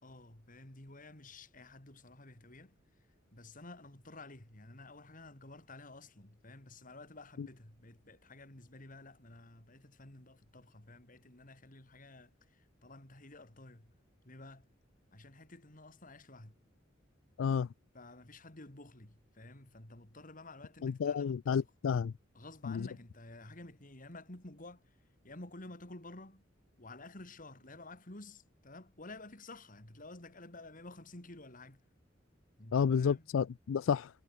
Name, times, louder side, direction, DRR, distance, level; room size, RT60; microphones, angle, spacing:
voice 1, 0.0-2.8 3.3-13.9 14.2-14.7 15.1-16.6 17.9-21.7 22.3-25.0 25.2-26.5 26.8-31.8 32.6-33.3, left 2 dB, 45° left, 3.0 m, -52 dB
voice 2, 20.8-22.1 32.7-34.1, left 6 dB, 85° left, 0.4 m, -30 dB
head